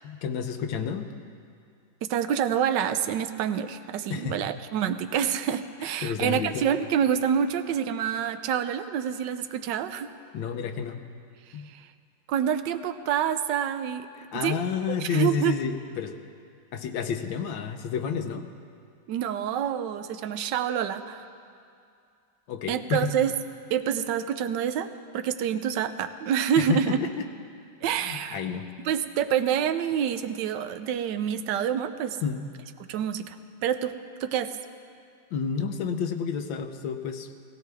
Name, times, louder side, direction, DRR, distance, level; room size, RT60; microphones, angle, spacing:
voice 1, 0.0-1.1 4.1-4.4 6.0-6.7 10.3-11.0 11.5-11.7 14.3-16.2 16.7-18.5 22.5-23.1 26.6-27.3 27.9-28.7 32.2-32.5 35.3-37.3, left 6 dB, 80° left, 7 dB, 1.5 m, -30 dB
voice 2, 2.0-10.1 11.7-11.9 12.3-14.1 14.3-14.5 15.0-15.6 19.1-21.3 22.7-23.3 23.7-24.9 25.1-27.0 27.8-28.4 28.8-32.2 32.9-33.9 34.2-34.5, right 9 dB, 75° right, 10 dB, 1.2 m, -27 dB
17.0 x 16.5 x 3.4 m, 2.4 s
omnidirectional pair, 2.0 m